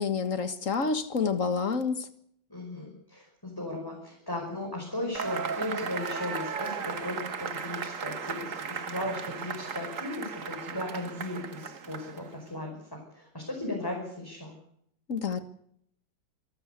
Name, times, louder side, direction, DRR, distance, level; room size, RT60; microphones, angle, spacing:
voice 1, 0.0-2.1 15.1-15.4, left 5 dB, 45° left, 11 dB, 1.8 m, -28 dB
voice 2, 2.5-14.5, left 1 dB, 10° left, -1 dB, 5.6 m, -37 dB
Cheering / Applause / Crowd, 5.2-12.4, right 6 dB, 45° right, 1.6 m, -36 dB
27.5 x 13.0 x 8.2 m, 0.71 s
omnidirectional pair, 2.0 m